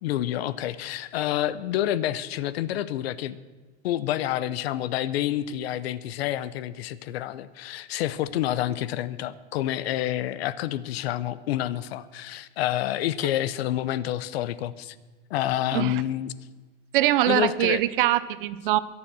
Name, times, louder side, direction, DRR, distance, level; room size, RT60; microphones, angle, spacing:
voice 1, 0.0-3.4 3.8-15.0 15.3-16.4 17.3-17.8, left 12 dB, 65° left, 17 dB, 0.8 m, -28 dB
voice 2, 16.9-18.8, right 14 dB, 50° right, 16 dB, 0.7 m, -23 dB
22.0 x 7.4 x 6.2 m, 1.3 s
supercardioid pair, 170°, 34 cm